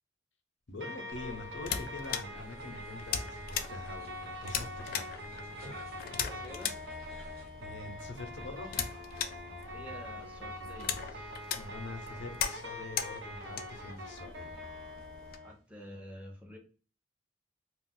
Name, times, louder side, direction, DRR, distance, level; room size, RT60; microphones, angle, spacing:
voice 1, 0.7-5.1 7.6-8.7 11.5-14.5, left 2 dB, 85° left, 6 dB, 0.6 m, -44 dB
sound 1, 0.8-15.5, left 1 dB, 80° right, 1.0 m, -44 dB
sound 2, 1.1-15.4, left 8 dB, 50° left, 0.3 m, -40 dB
sound 3, 2.4-7.5, equal, 55° right, 1.1 m, -54 dB
voice 2, 6.2-6.8 9.7-11.4 15.4-16.6, equal, 5° right, 0 dB, 0.7 m, -49 dB
2.4 x 2.1 x 3.7 m, 0.37 s
head